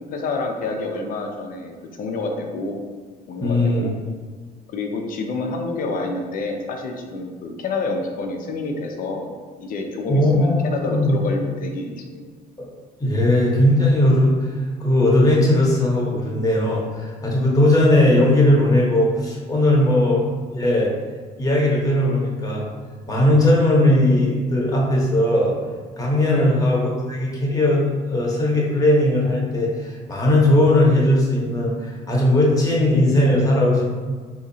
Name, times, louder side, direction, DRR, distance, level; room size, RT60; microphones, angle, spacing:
voice 1, 0.1-2.8 3.3-3.9 4.7-9.3 9.6-12.3 26.3-26.6, left 3 dB, 55° left, 3 dB, 0.5 m, -28 dB
voice 2, 3.4-3.9 10.1-11.1 12.6-12.7 13.0-20.9 21.4-22.6 23.1-25.6 26.0-33.9, left 1 dB, 20° left, -4 dB, 1.0 m, -18 dB
3.8 x 2.8 x 2.7 m, 1.5 s
cardioid pair, 110°, 17 cm